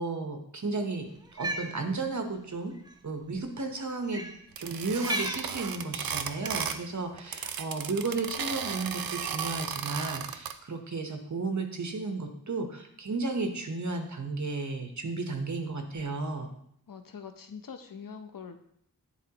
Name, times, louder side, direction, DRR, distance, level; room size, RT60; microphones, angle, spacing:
voice 1, 0.0-2.7 3.0-4.2 4.6-16.5, right 3 dB, 55° right, 5 dB, 0.9 m, -33 dB
Cat, 1.2-1.7 2.8-2.9 4.1-4.4 5.0-5.5 6.4-6.8, right 1 dB, 10° right, 0.5 m, -34 dB
sound 1, 4.6-6.9 7.1-10.5, right 7 dB, 80° right, 0.5 m, -35 dB
voice 2, 16.9-18.6, left 6 dB, 65° left, 7 dB, 0.7 m, -43 dB
10.0 x 3.9 x 2.9 m, 0.69 s
wide cardioid pair, 75°, 35 cm